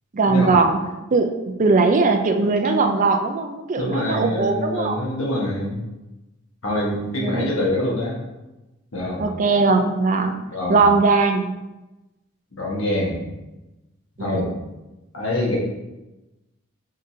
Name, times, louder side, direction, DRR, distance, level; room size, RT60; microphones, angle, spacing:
voice 1, 0.1-0.8 1.1-1.3 1.6-5.0 6.7-7.5 9.2-10.3 10.7-11.5 14.2-14.4, right 3 dB, 40° right, 5 dB, 0.4 m, -19 dB
voice 2, 3.8-5.8 6.6-8.2 8.9-9.3 10.4-10.9 12.5-13.2 14.2-14.5 15.1-15.6, left 1 dB, 75° left, -4 dB, 1.4 m, -25 dB
5.2 x 3.8 x 2.7 m, 1.0 s
head